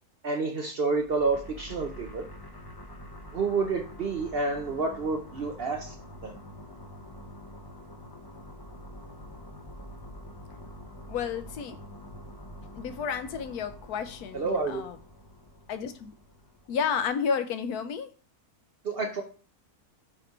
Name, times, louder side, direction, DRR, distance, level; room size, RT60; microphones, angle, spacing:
voice 1, 0.2-2.2 3.3-5.9 6.2-6.3 14.3-14.8 18.8-19.2, right 4 dB, 55° right, 3 dB, 0.7 m, -29 dB
sound 1, 0.9-17.1, equal, 35° left, 0.3 m, -46 dB
voice 2, 11.1-11.8 12.7-15.0 15.7-16.1 16.7-18.1, left 6 dB, 80° left, 10 dB, 1.2 m, -31 dB
5.0 x 4.3 x 4.5 m, 0.39 s
omnidirectional pair, 1.6 m